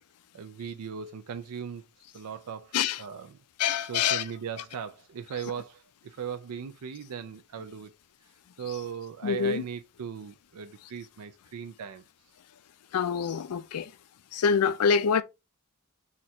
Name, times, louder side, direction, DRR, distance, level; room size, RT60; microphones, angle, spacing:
voice 1, 0.3-1.8 2.1-3.4 3.8-7.9 8.6-12.0, right 7 dB, 85° right, 0.4 m, -38 dB
voice 2, 3.6-4.2 9.2-9.6 12.9-13.9 14.3-15.2, left 6 dB, 85° left, 0.4 m, -25 dB
4.3 x 2.5 x 4.2 m
head